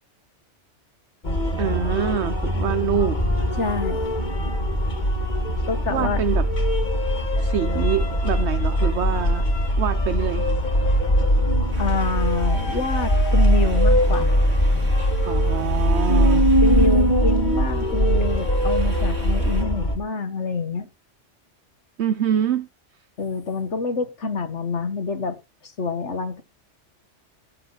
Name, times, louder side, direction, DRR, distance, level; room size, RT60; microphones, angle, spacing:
sound 1, 1.2-20.0, equal, 40° left, 2.3 m, -21 dB
voice 1, 1.6-3.6 5.9-6.5 7.4-9.5 9.8-10.5 15.3-16.5 22.0-22.7, right 8 dB, 70° right, 1.1 m, -25 dB
voice 2, 3.6-4.1 5.7-6.2 11.8-14.4 16.1-20.9 23.2-25.4 25.6-26.4, left 4 dB, 70° left, 2.0 m, -27 dB
sound 2, 11.7-19.6, right 2 dB, 85° right, 3.3 m, -44 dB
17.5 x 7.8 x 4.0 m
omnidirectional pair, 1.2 m